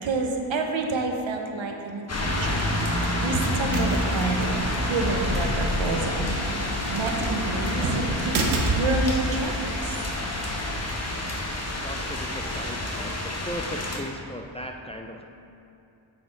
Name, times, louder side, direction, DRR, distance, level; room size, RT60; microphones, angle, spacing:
voice 1, 0.0-4.5 4.8-10.0, right 3 dB, 70° right, 3 dB, 1.0 m, -29 dB
sound 1, 2.1-14.0, left 1 dB, 30° left, 1.2 m, -28 dB
Mechanical fan, 2.4-10.8, left 4 dB, 55° left, 0.7 m, -40 dB
sound 2, 3.1-12.0, right 3 dB, 90° right, 0.9 m, -32 dB
voice 2, 11.8-15.2, equal, 15° left, 3 dB, 0.4 m, -37 dB
8.8 x 4.2 x 4.5 m, 2.8 s
cardioid pair, 65°, 48 cm